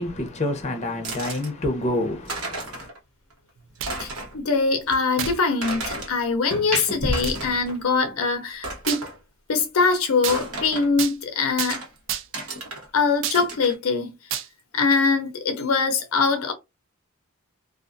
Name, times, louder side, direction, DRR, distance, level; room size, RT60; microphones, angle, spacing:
voice 1, 0.0-2.9, left 1 dB, 30° left, 0.7 m, -28 dB
sound 1, 1.0-1.5 2.0-2.1 2.3-3.0 3.3-3.4 3.8-4.4 4.9-5.0 5.6-6.1 6.9-7.8 8.1-8.2 8.6-9.2 10.3-10.9 11.7-11.9 12.3-12.9 13.3-13.8, right 1 dB, 75° right, 1.1 m, -32 dB
sound 2, 1.7-4.0 4.4-5.8 6.3-8.4 8.7-9.0, equal, 5° left, 1.3 m, -36 dB
sound 3, 3.6-4.1 5.2-5.4 6.1-6.2 7.2-7.4 8.9-9.1 10.2-10.4 11.0-11.2 11.6-11.8 12.1-12.5 13.2-13.4 14.3-14.5, right 10 dB, 60° right, 0.4 m, -29 dB
voice 2, 4.0-9.1 9.5-11.8 12.9-14.2 14.7-16.5, left 4 dB, 70° left, 0.5 m, -23 dB
2.4 x 2.4 x 2.5 m
head